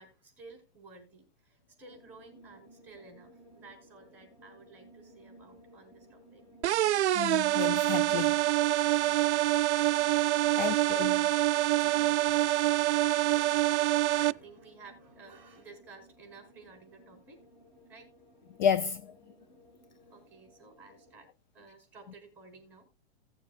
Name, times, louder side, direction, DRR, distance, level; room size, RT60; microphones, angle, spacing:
voice 1, 0.0-6.4 10.5-10.8 12.3-17.5 17.9-18.1 20.1-21.3 21.5-22.8, right 3 dB, 5° right, 4.1 m, -54 dB
sound 1, 1.9-21.2, equal, 10° left, 3.0 m, -58 dB
sound 2, 6.6-14.3, right 15 dB, 85° right, 0.6 m, -26 dB
voice 2, 7.1-8.4 10.6-11.3 11.9-12.1 18.6-19.1, left 8 dB, 45° left, 0.4 m, -31 dB
17.5 x 7.2 x 2.3 m
supercardioid pair, 170°, 33 cm